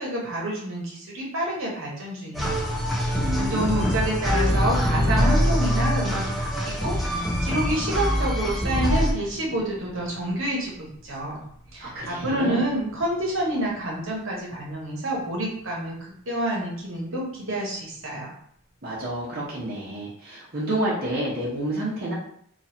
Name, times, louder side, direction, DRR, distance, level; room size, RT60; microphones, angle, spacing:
voice 1, 0.0-2.7 3.1-11.4 11.7-15.9 16.3-18.3, right 1 dB, 65° right, -3 dB, 1.1 m, -28 dB
sound 1, 2.4-13.6, right 1 dB, 70° left, 0.6 m, -32 dB
sound 2, 2.4-9.1, equal, ahead, 0.5 m, -24 dB
voice 2, 3.2-4.0 11.8-12.6 18.8-22.1, right 1 dB, 45° right, -7 dB, 0.9 m, -29 dB
3.0 x 2.4 x 4.2 m, 0.64 s
head